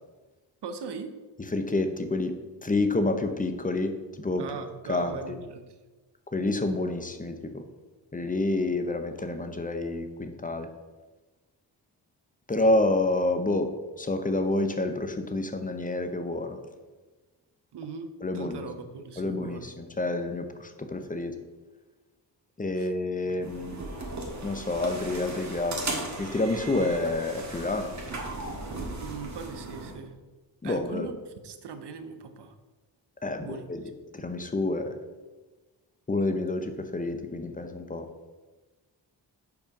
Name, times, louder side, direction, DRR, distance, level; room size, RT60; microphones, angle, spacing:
voice 1, 0.6-1.1 4.4-5.8 17.7-18.1 18.3-19.7 22.8-22.9 23.2-23.5 29.0-30.1 30.6-32.5 33.4-33.7, right 5 dB, 65° right, 8 dB, 0.9 m, -40 dB
voice 2, 1.5-4.5 4.9-5.4 6.3-7.6 8.1-10.7 12.5-13.7 14.0-16.6 18.2-18.7 19.2-21.3 22.6-23.8 24.4-28.0 30.6-31.1 33.2-33.8 34.1-34.9 36.1-38.1, left 2 dB, 20° left, 7 dB, 0.7 m, -28 dB
sound 1, 23.4-29.9, right 2 dB, 40° right, 1.6 m, -37 dB
5.8 x 4.2 x 5.9 m, 1.3 s
cardioid pair, 75°, 44 cm